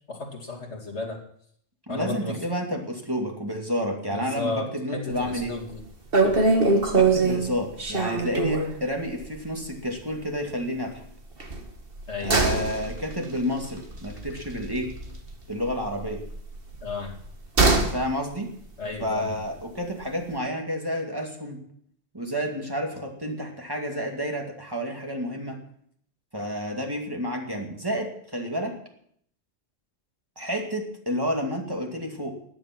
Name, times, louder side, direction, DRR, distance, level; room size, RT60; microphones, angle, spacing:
voice 1, 0.1-1.2 1.9-2.4 4.1-5.8 6.2-6.4 12.1-12.5 16.8-17.1 18.8-19.4, left 3 dB, 80° left, 1 dB, 2.9 m, -33 dB
voice 2, 1.9-5.6 6.9-11.0 12.2-15.0 15.5-16.2 17.9-18.5 19.0-21.6 22.1-25.6 26.3-28.8 30.4-32.4, equal, 20° right, 1 dB, 2.4 m, -30 dB
sound 1, 5.2-5.5 5.8-5.9 6.1-8.8 9.2-9.4 9.6-9.7 11.4-15.3 15.6-18.0 18.3-18.4, right 3 dB, 55° right, 2.0 m, -23 dB
15.5 x 10.5 x 6.1 m, 0.66 s
omnidirectional pair, 1.1 m